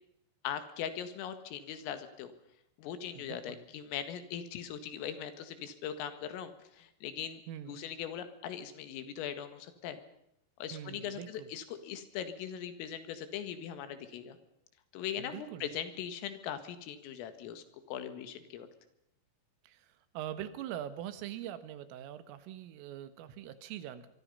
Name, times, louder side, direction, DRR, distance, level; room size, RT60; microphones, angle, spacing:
voice 1, 0.4-2.3 2.8-7.4 7.7-10.0 10.6-14.4 14.9-18.7, left 9 dB, 90° left, 10 dB, 4.5 m, -40 dB
voice 2, 3.1-3.6 7.5-7.8 10.7-11.5 15.2-15.7 19.6-24.1, right 11 dB, 90° right, 12 dB, 4.1 m, -43 dB
24.5 x 24.0 x 5.5 m, 0.78 s
omnidirectional pair, 5.7 m